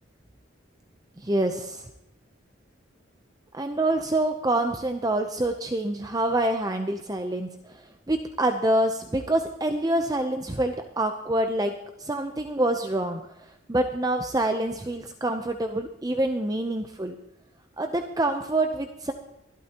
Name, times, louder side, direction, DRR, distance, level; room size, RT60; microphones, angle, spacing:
voice 1, 1.2-1.9 3.5-11.7 12.0-13.2 13.7-17.1 17.8-19.1, right 1 dB, 20° right, 6 dB, 0.6 m, -26 dB
23.5 x 12.0 x 2.9 m, 0.87 s
head